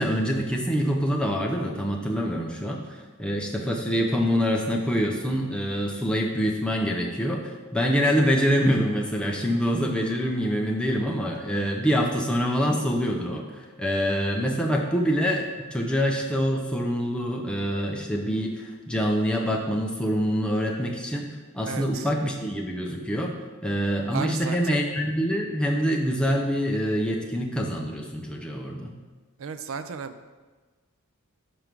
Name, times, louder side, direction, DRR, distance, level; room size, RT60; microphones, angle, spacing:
voice 1, 0.0-23.4 23.6-28.9, equal, 5° left, 0 dB, 0.6 m, -25 dB
voice 2, 21.6-22.1 24.1-24.8 29.4-30.3, right 5 dB, 60° right, 10 dB, 0.4 m, -35 dB
5.8 x 4.7 x 5.2 m, 1.3 s
head